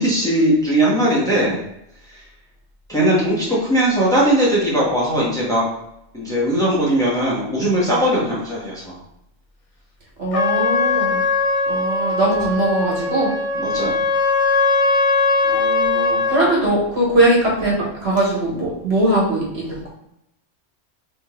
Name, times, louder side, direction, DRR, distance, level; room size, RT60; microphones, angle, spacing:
voice 1, 0.0-1.6 2.1-2.2 2.9-5.6 6.1-9.0 13.6-13.9, right 1 dB, 5° left, -7 dB, 1.5 m, -19 dB
voice 2, 10.2-11.2 11.7-13.3 15.4-19.9, right 1 dB, 65° right, -4 dB, 1.6 m, -20 dB
Trumpet, 10.3-16.5, left 3 dB, 40° left, 0.6 m, -20 dB
3.9 x 3.2 x 3.7 m, 0.82 s
omnidirectional pair, 1.2 m